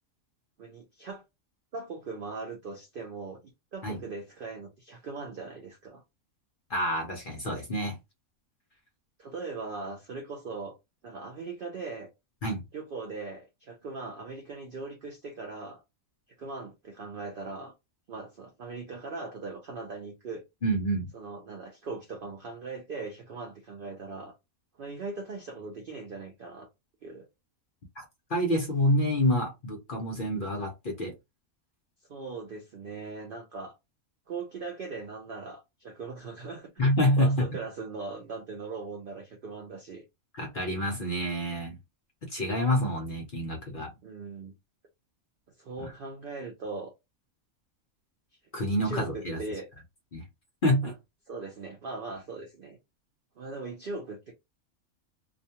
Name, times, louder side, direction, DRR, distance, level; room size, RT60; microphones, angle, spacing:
voice 1, 0.6-1.2 1.7-6.0 9.2-10.8 11.0-12.1 12.7-15.8 16.4-17.7 18.1-20.4 21.1-24.4 24.8-26.7 27.0-27.3 32.1-33.7 34.3-36.8 37.2-40.0 44.0-44.5 45.6-46.9 48.8-49.7 50.8-50.9 51.3-52.8 53.4-54.3, right 3 dB, 65° right, 0.5 m, -39 dB
voice 2, 6.7-8.0 12.4-12.6 20.6-21.1 28.0-28.1 28.3-31.1 36.8-37.5 40.3-41.7 42.2-43.9 45.8-45.9 48.5-49.4 50.1-50.2 50.6-50.9, equal, 50° left, 0.6 m, -27 dB
2.4 x 2.2 x 2.7 m
omnidirectional pair, 1.5 m